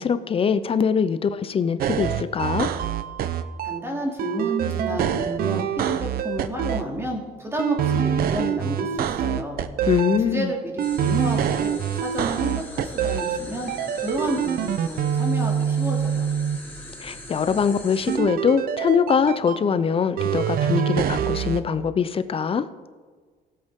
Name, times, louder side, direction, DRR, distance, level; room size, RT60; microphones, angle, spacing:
voice 1, 0.0-2.7 9.9-10.5 17.0-22.7, left 6 dB, 35° left, 13 dB, 0.6 m, -23 dB
sound 1, 1.8-3.8 4.2-6.8 7.6-10.2 10.8-13.4 13.7-16.6 18.1-19.6 20.2-21.6, right 8 dB, 60° right, 0.7 m, -25 dB
voice 2, 3.6-6.0 6.2-9.6 10.2-13.7 14.0-16.3, right 1 dB, 15° right, 0 dB, 2.7 m, -30 dB
sound 2, 10.8-18.2, left 1 dB, 10° left, 2.9 m, -41 dB
17.0 x 8.0 x 3.7 m, 1.5 s
cardioid pair, 110°, 17 cm